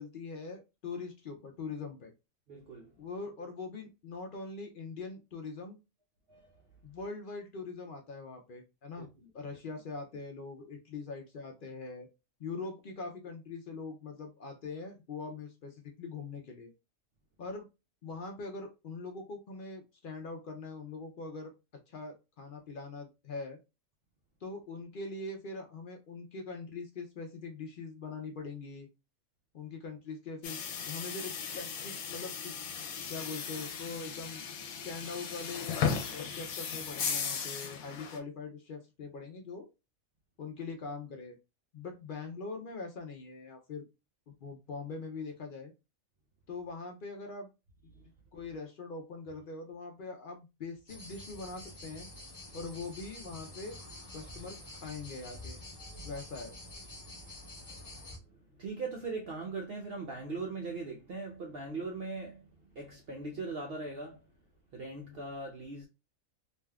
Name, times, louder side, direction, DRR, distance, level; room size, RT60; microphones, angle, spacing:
voice 1, 0.0-2.1 3.0-5.8 6.8-9.1 9.3-12.1 12.4-16.7 17.4-17.7 18.0-21.5 21.9-23.6 24.4-28.9 29.5-32.5 33.1-34.4 34.7-35.8 36.1-39.7 40.4-41.4 41.7-43.8 44.4-45.7 46.5-47.5 48.3-52.1 52.5-53.8 54.1-54.6 54.8-55.6 56.0-56.6, left 4 dB, 60° left, 0.5 m, -42 dB
voice 2, 2.5-2.9 6.3-6.6 9.0-9.1 47.9-48.0 57.6-62.5 62.7-64.2 64.7-65.9, right 3 dB, 60° right, 0.6 m, -40 dB
sound 1, 30.4-38.2, left 6 dB, 80° left, 1.1 m, -36 dB
sound 2, 50.9-58.2, left 1 dB, 25° left, 1.1 m, -47 dB
3.4 x 2.5 x 2.2 m
omnidirectional pair, 1.5 m